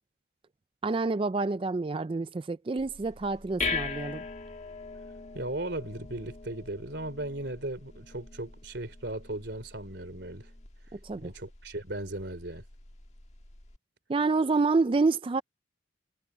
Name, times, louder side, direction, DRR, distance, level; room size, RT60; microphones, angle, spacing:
voice 1, 0.8-4.2 10.9-11.3 14.1-15.4, right 3 dB, 25° right, 0.4 m, -28 dB
sound 1, 2.8-13.8, left 4 dB, 35° left, 1.6 m, -41 dB
voice 2, 5.3-10.5 11.2-12.6, right 1 dB, 60° right, 3.7 m, -37 dB
head